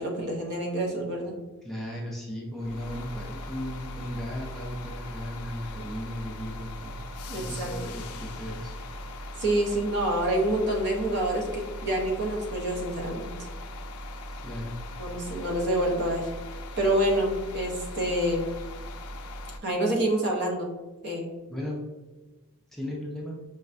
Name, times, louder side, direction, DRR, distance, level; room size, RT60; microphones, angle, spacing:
voice 1, 0.0-1.4 7.3-7.7 9.4-13.3 15.0-16.3 16.8-18.4 19.6-20.7 21.0-21.3, right 1 dB, 50° right, -1 dB, 0.7 m, -27 dB
voice 2, 1.6-8.8 14.4-14.7 21.5-21.8 22.7-23.4, equal, ahead, -4 dB, 0.5 m, -36 dB
sound 1, 2.6-19.6, left 1 dB, 75° left, 0.3 m, -39 dB
5.3 x 2.2 x 2.4 m, 1.2 s
head